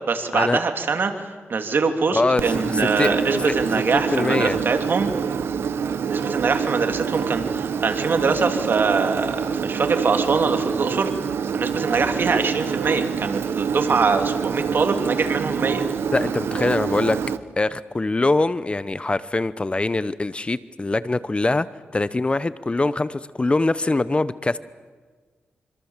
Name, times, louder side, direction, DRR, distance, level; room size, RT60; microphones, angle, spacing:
voice 1, 0.1-5.1 6.0-11.1 11.5-15.9, right 4 dB, 60° right, 5 dB, 3.0 m, -23 dB
voice 2, 2.1-3.2 3.9-4.6 16.1-17.2 17.6-21.7 21.9-24.6, left 2 dB, 25° left, 15 dB, 0.8 m, -23 dB
Engine, 2.4-17.4, right 7 dB, 80° right, 1.2 m, -26 dB
26.0 x 25.5 x 7.4 m, 1.5 s
cardioid pair, 70°, 4 cm